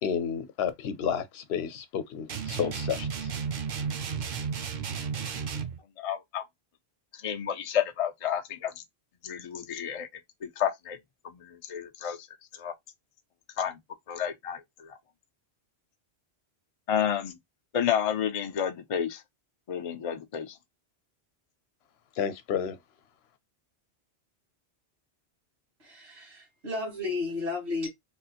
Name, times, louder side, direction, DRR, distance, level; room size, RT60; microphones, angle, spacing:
voice 1, 0.0-3.1 22.2-22.8, left 8 dB, 75° left, 0.9 m, -31 dB
sound 1, 2.3-5.8, right 6 dB, 55° right, 0.6 m, -33 dB
voice 2, 6.0-6.4 7.1-8.7 9.2-10.1 10.4-11.0 11.2-12.3 12.5-12.7 13.6-13.8 14.1-15.0 16.9-17.4 17.7-19.2 19.7-20.6, left 9 dB, 60° left, 0.3 m, -30 dB
voice 3, 25.8-27.9, left 3 dB, 75° right, 1.8 m, -33 dB
3.4 x 2.4 x 2.8 m
omnidirectional pair, 1.1 m